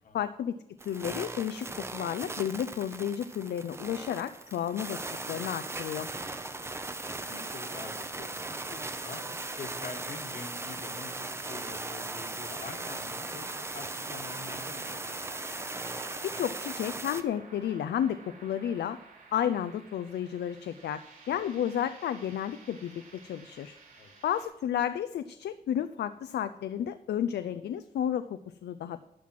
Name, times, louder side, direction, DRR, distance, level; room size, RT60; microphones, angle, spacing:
voice 1, 0.1-0.6 0.8-6.1 16.2-19.0 19.3-23.8 24.2-29.0, left 9 dB, 85° left, 11 dB, 0.5 m, -32 dB
sound 1, 0.8-17.2, right 2 dB, 15° right, 0.6 m, -38 dB
voice 2, 6.5-6.8 7.3-15.2 21.3-21.4 24.0-24.2, left 4 dB, 55° left, 4 dB, 1.4 m, -46 dB
sound 2, 12.5-24.5, right 3 dB, 60° right, 4.8 m, -53 dB
12.0 x 5.9 x 7.5 m, 0.85 s
wide cardioid pair, 160°, 17 cm